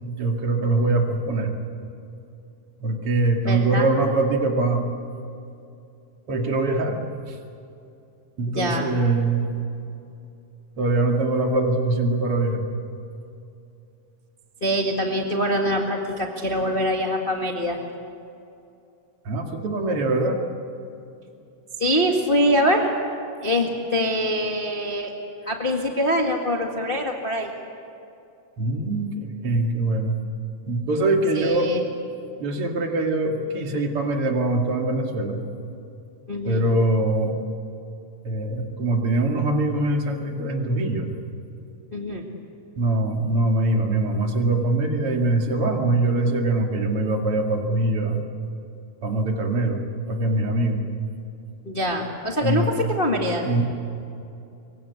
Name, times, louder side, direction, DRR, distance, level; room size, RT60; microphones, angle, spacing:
voice 1, 0.0-1.5 2.8-4.9 6.3-7.0 7.3-7.4 8.4-9.5 10.8-12.7 19.2-20.4 28.6-30.2 30.7-31.7 32.4-35.4 36.4-37.3 38.2-41.1 42.8-48.2 49.0-49.8 50.1-50.8 52.4-52.7 53.4-53.6, right 2 dB, 45° right, 2 dB, 3.0 m, -23 dB
voice 2, 3.5-3.9 8.5-8.9 14.6-17.8 21.8-22.9 23.4-25.1 25.4-27.5 31.3-31.8 36.3-36.6 41.9-42.2 51.6-53.4, equal, 20° left, 1 dB, 1.5 m, -24 dB
25.5 x 23.5 x 8.2 m, 2.6 s
omnidirectional pair, 3.8 m